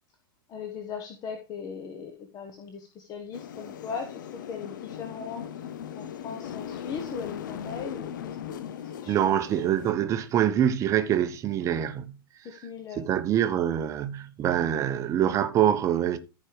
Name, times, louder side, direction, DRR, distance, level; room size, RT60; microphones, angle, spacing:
voice 1, 0.5-4.2 4.5-5.4 5.9-8.1 8.5-9.4 12.4-13.0, left 6 dB, 30° left, 1.0 m, -38 dB
sound 1, 3.3-9.9, left 9 dB, 55° left, 0.7 m, -39 dB
voice 2, 9.1-12.2 13.0-16.2, right 10 dB, 25° right, 0.8 m, -25 dB
14.0 x 5.0 x 3.3 m
figure-of-eight pair, 95°, 12 cm